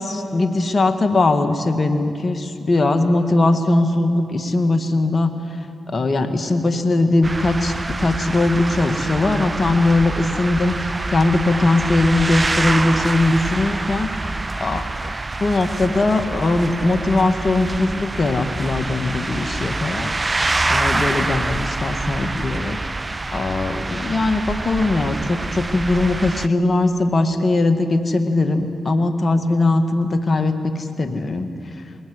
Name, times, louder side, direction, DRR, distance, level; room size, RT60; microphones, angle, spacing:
voice 1, 0.0-5.3 5.9-15.1 15.4-20.1 20.7-22.8 23.3-31.5, left 2 dB, 50° left, 7 dB, 1.7 m, -20 dB
sound 1, 7.2-26.5, right 2 dB, 30° right, 0.7 m, -26 dB
21.0 x 18.5 x 9.6 m, 2.6 s
supercardioid pair, 45°, 0 cm